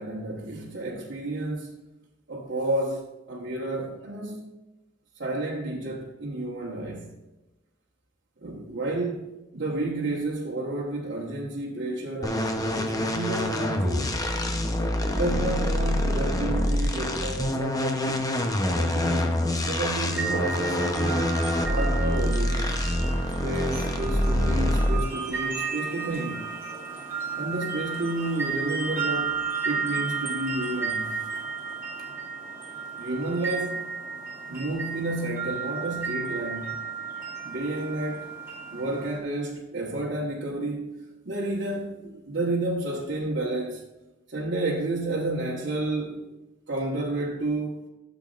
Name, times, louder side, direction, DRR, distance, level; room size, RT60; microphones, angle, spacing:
voice 1, 0.0-1.8 2.3-4.4 5.2-7.2 8.4-14.2 15.0-18.3 18.7-21.4 21.7-22.8 23.4-26.5 27.3-31.2 32.0-32.1 33.0-33.9 34.5-36.8 37.4-38.3 38.7-41.0 41.2-43.8 44.3-46.3 46.7-47.9, right 2 dB, 65° right, 1.2 m, -31 dB
sound 1, 12.2-25.2, left 1 dB, 20° left, 0.8 m, -26 dB
sound 2, 20.1-39.2, right 6 dB, 15° right, 2.2 m, -33 dB
13.0 x 7.4 x 2.5 m
head